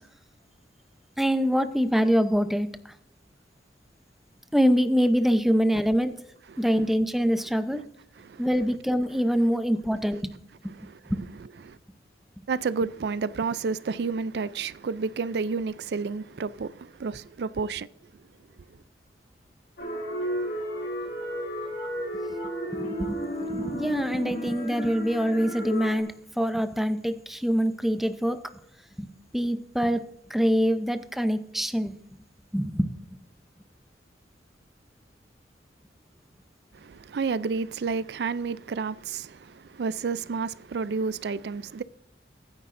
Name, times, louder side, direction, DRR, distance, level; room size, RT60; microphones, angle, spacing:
voice 1, 1.2-2.9 4.5-6.2 6.6-7.8 8.4-10.4 10.6-10.7 11.1-11.2 22.7-23.2 23.5-28.4 29.0-32.0 32.5-32.9, equal, ahead, 0.6 m, -25 dB
voice 2, 12.5-17.9 36.7-41.8, right 4 dB, 65° right, 0.4 m, -30 dB
sound 1, 19.8-26.0, equal, 70° left, 3.5 m, -33 dB
22.0 x 9.8 x 2.6 m
head